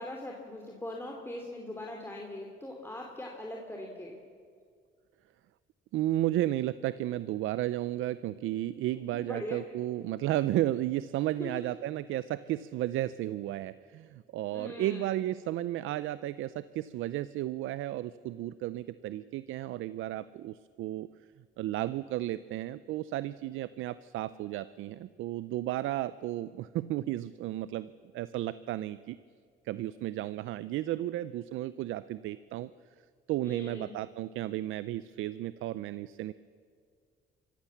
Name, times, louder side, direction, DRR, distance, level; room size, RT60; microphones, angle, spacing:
voice 1, 0.0-4.2 8.9-9.7 11.4-11.6 14.5-15.1 33.4-33.9, left 1 dB, 10° left, 0 dB, 2.8 m, -41 dB
voice 2, 5.9-21.1 21.6-29.2 29.6-32.7 33.3-36.3, right 14 dB, 85° right, 16 dB, 0.5 m, -33 dB
24.5 x 15.0 x 7.3 m, 2.1 s
cardioid pair, 90°, 20 cm